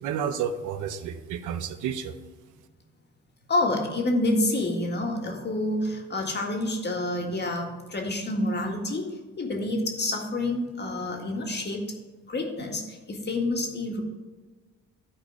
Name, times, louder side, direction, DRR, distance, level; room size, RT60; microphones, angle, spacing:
voice 1, 0.0-2.1, right 8 dB, 80° right, 9 dB, 0.8 m, -31 dB
voice 2, 3.5-11.9 12.3-14.0, left 1 dB, 35° left, 1 dB, 1.8 m, -28 dB
11.5 x 4.3 x 4.8 m, 1.3 s
cardioid pair, 90°, 30 cm